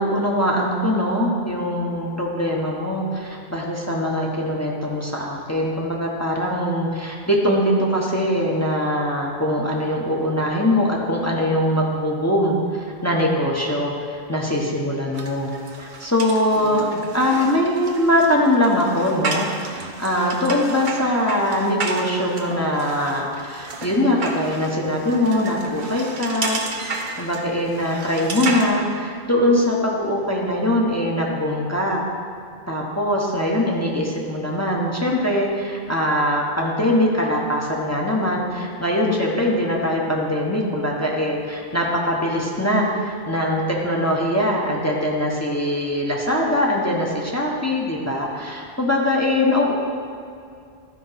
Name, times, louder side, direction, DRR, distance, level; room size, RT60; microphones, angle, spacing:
voice 1, 0.0-15.5 15.8-16.8 17.1-32.0 32.7-49.7, left 1 dB, 15° left, -3 dB, 0.9 m, -22 dB
sound 1, 15.1-28.7, right 3 dB, 55° right, 0.9 m, -32 dB
12.0 x 4.6 x 5.6 m, 2.4 s
omnidirectional pair, 1.0 m